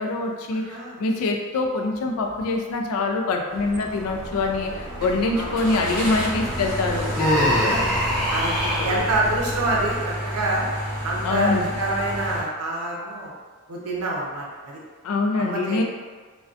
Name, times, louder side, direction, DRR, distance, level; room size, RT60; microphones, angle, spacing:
voice 1, 0.0-7.7 8.4-9.0 11.2-11.7 15.0-15.8, left 3 dB, 75° left, 3 dB, 0.3 m, -25 dB
voice 2, 0.5-1.0 5.4-5.8 7.5-7.8 8.3-8.5 8.8-10.7 11.0-13.3 13.7-14.8 15.4-15.8, right 2 dB, 85° right, -2 dB, 0.6 m, -27 dB
sound 1, 2.3-2.5 3.0-3.1 5.5-12.4, equal, 35° left, 0.9 m, -31 dB
sound 2, 3.5-10.0, right 1 dB, 40° right, 0.7 m, -35 dB
Human voice, 7.2-9.0, equal, ahead, 0.5 m, -23 dB
2.4 x 2.2 x 2.4 m, 1.5 s
head